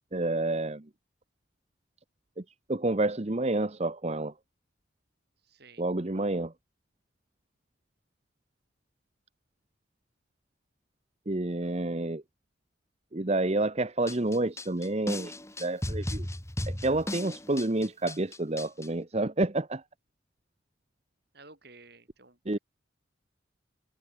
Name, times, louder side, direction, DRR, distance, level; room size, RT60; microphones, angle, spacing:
voice 1, 0.1-0.9 2.4-2.5 2.7-4.3 5.8-6.5 11.3-12.2 13.1-15.3 15.6-16.3 16.7-19.8 22.5-22.6, right 2 dB, 35° right, 1.0 m, -29 dB
voice 2, 5.4-5.8 21.3-22.6, right 3 dB, 55° right, 6.8 m, -54 dB
sound 1, 14.1-18.9, left 1 dB, 15° left, 2.7 m, -35 dB
head